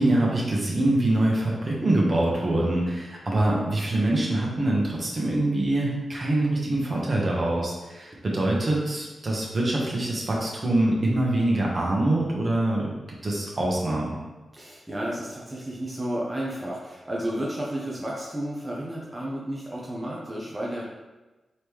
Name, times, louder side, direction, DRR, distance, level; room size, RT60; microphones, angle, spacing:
voice 1, 0.0-12.9 13.2-14.2, right 1 dB, 45° right, -3 dB, 1.2 m, -24 dB
voice 2, 14.5-20.8, right 1 dB, 20° right, -5 dB, 0.9 m, -32 dB
4.1 x 3.1 x 3.5 m, 1.1 s
cardioid pair, 55°, 0 cm